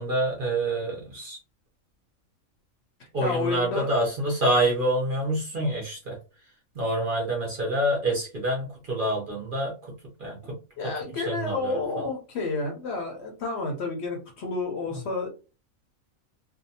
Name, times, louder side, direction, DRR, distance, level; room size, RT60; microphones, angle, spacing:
voice 1, 0.0-1.4 3.1-6.2 6.8-9.7 10.2-10.4 11.3-12.0, right 1 dB, 50° right, -1 dB, 0.7 m, -27 dB
voice 2, 3.2-3.9 10.4-10.5 10.8-15.3, left 3 dB, 60° left, 2 dB, 0.8 m, -30 dB
2.6 x 2.2 x 2.7 m, 0.33 s
omnidirectional pair, 1.5 m